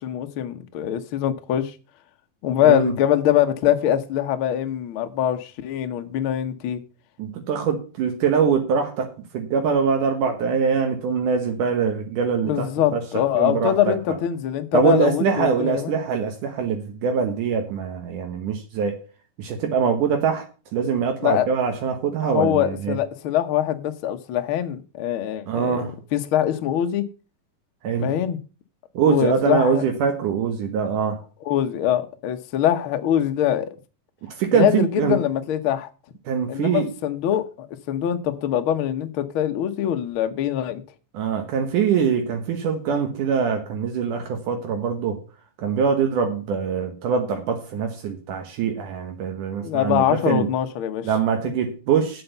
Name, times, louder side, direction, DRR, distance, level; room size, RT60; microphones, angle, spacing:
voice 1, 0.0-1.7 2.4-6.8 12.5-15.9 21.2-21.5 22.2-25.8 26.1-27.0 28.0-28.4 29.1-29.8 31.4-33.7 34.5-35.9 36.5-40.8 49.6-51.1, left 11 dB, 65° left, 1.3 m, -23 dB
voice 2, 2.6-2.9 7.2-13.0 13.3-14.0 14.7-19.0 19.4-20.5 20.7-23.0 25.5-25.9 27.8-28.1 28.9-31.2 34.2-35.2 36.3-36.9 41.1-45.2 45.6-50.5 51.0-52.2, right 6 dB, 75° right, 2.8 m, -23 dB
8.5 x 8.0 x 6.7 m
omnidirectional pair, 3.7 m